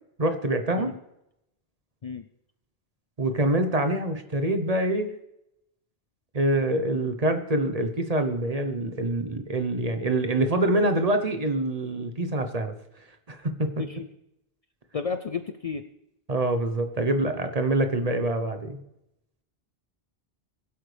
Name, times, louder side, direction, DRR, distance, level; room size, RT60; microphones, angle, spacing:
voice 1, 0.2-1.0 3.2-5.1 6.3-12.7 13.3-13.7 16.3-18.8, right 1 dB, 40° right, 7 dB, 1.0 m, -25 dB
voice 2, 14.9-15.8, left 5 dB, 45° left, 8 dB, 0.5 m, -32 dB
21.0 x 8.0 x 3.3 m, 0.84 s
omnidirectional pair, 1.0 m